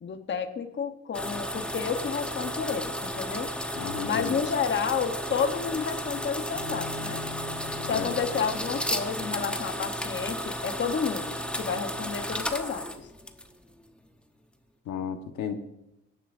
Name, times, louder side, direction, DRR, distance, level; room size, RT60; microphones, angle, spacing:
voice 1, 0.0-3.6 4.0-7.3 7.8-13.1, left 6 dB, 40° left, 7 dB, 1.0 m, -31 dB
sound 1, 1.1-13.7, equal, 5° left, 1.0 m, -33 dB
voice 2, 3.7-4.4 7.8-8.1 14.9-15.5, left 7 dB, 80° left, 6 dB, 1.3 m, -33 dB
Bowed string instrument, 6.5-9.5, left 3 dB, 55° right, 4.9 m, -43 dB
17.5 x 10.0 x 2.6 m, 0.87 s
cardioid pair, 90°, 30 cm